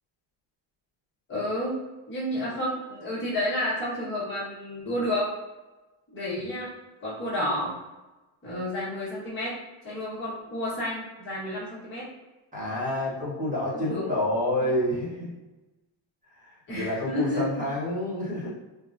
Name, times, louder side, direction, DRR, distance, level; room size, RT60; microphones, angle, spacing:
voice 1, 1.3-1.8 2.1-5.3 6.1-6.7 7.0-7.7 8.4-9.5 9.8-12.1 13.9-14.0 16.7-17.4, left 1 dB, 25° left, -10 dB, 1.2 m, -30 dB
voice 2, 12.5-15.3 16.3-18.5, left 1 dB, 15° right, -7 dB, 1.0 m, -29 dB
3.6 x 2.2 x 2.5 m, 1.1 s
cardioid pair, 155°, 48 cm